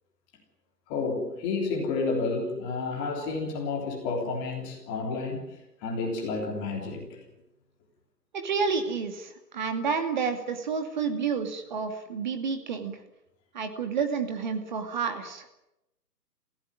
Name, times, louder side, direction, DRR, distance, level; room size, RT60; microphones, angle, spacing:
voice 1, 0.9-7.2, left 3 dB, 15° left, 0 dB, 3.5 m, -31 dB
voice 2, 8.3-13.0 13.5-15.4, right 5 dB, 30° right, 6 dB, 2.5 m, -30 dB
26.5 x 16.0 x 9.4 m, 0.91 s
hypercardioid pair, 165°, 48 cm